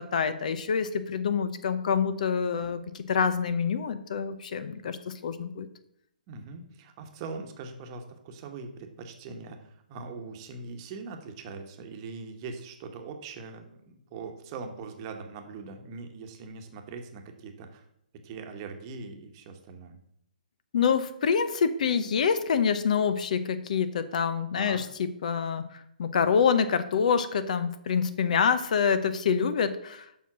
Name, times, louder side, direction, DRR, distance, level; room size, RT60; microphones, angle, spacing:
voice 1, 0.0-5.7 20.7-30.2, left 6 dB, 55° left, 12 dB, 0.8 m, -26 dB
voice 2, 6.3-17.8 18.2-20.0 24.6-24.8, right 4 dB, 30° right, 4 dB, 1.2 m, -41 dB
7.2 x 5.6 x 6.0 m, 0.75 s
hypercardioid pair, 150°, 5 cm